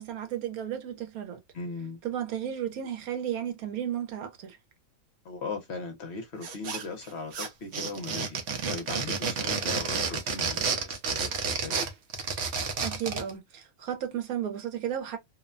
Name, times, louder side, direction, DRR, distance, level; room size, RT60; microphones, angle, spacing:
voice 1, 0.0-1.4 2.0-4.6 12.8-15.2, right 10 dB, 80° right, 1.1 m, -33 dB
voice 2, 1.5-2.0 5.2-8.4 8.7-11.8, left 4 dB, 55° left, 0.9 m, -38 dB
sound 1, 6.4-7.1 7.3-13.3, right 5 dB, 60° right, 0.8 m, -30 dB
2.8 x 2.1 x 2.4 m
omnidirectional pair, 1.5 m